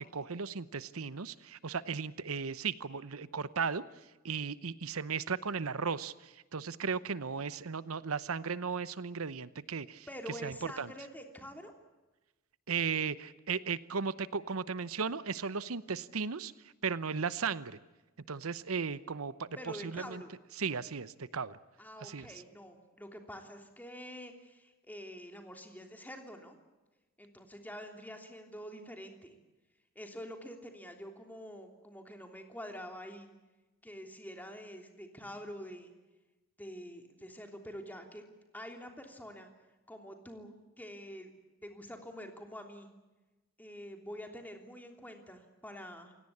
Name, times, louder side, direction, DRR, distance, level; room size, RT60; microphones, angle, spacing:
voice 1, 0.1-3.8 4.2-10.1 10.4-10.9 12.7-16.5 16.8-17.8 18.3-19.5 19.8-20.2 20.6-21.6 22.0-22.3, right 5 dB, 85° right, 16 dB, 0.9 m, -36 dB
voice 2, 10.1-11.7 19.6-20.3 21.8-26.6 27.2-29.4 29.9-33.3 33.8-35.9 36.6-38.2 38.5-39.5 39.9-41.3 41.6-42.9 43.6-46.1, equal, 10° left, 4 dB, 3.2 m, -46 dB
29.0 x 17.5 x 8.6 m, 1.1 s
head